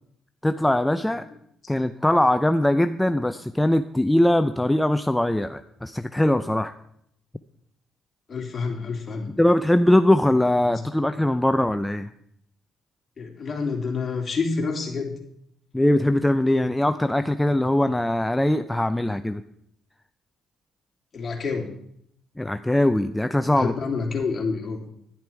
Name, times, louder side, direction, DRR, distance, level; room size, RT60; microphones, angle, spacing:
voice 1, 0.4-1.2 1.7-6.7 9.4-12.1 15.7-19.4 22.4-23.7, left 1 dB, 10° left, 10 dB, 0.5 m, -21 dB
voice 2, 8.3-9.3 10.6-10.8 13.2-15.2 21.1-21.7 23.5-24.8, left 4 dB, 40° left, 2 dB, 3.1 m, -28 dB
10.5 x 10.5 x 4.6 m, 0.72 s
supercardioid pair, 60°, 0 cm